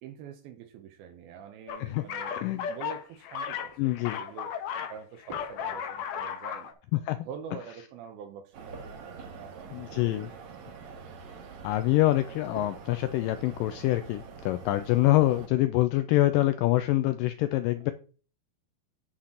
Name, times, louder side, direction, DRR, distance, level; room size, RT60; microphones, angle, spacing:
voice 1, 0.0-2.4 2.7-4.5 4.9-6.8 7.2-10.9 17.4-17.6, right 7 dB, 80° right, 5 dB, 2.6 m, -45 dB
sound 1, 1.7-5.0 5.2-6.7, left 8 dB, 70° left, 2.2 m, -35 dB
voice 2, 2.3-2.7 3.8-4.2 7.1-7.3 9.7-10.3 11.6-17.9, left 16 dB, 90° left, 10 dB, 1.9 m, -25 dB
sound 2, 3.7-4.0 5.3-6.1 8.7-10.2 10.5-10.8 12.5-13.3, right 2 dB, 30° right, 1.0 m, -50 dB
sound 3, 8.5-15.5, right 5 dB, 60° right, 2.1 m, -45 dB
9.7 x 5.8 x 3.8 m, 0.39 s
omnidirectional pair, 4.4 m